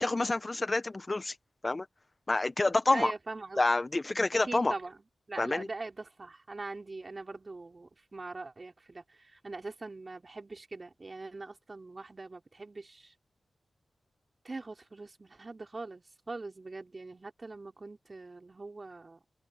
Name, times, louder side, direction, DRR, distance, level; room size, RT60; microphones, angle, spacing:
voice 1, 0.0-1.4 1.6-1.9 2.3-3.1 3.6-4.7 5.4-5.7, left 2 dB, 35° left, 0.9 m, -28 dB
voice 2, 2.9-3.6 4.3-5.0 5.3-13.1 14.4-19.2, right 3 dB, 40° right, 5.4 m, -42 dB
open air
cardioid pair, 50°, 0 cm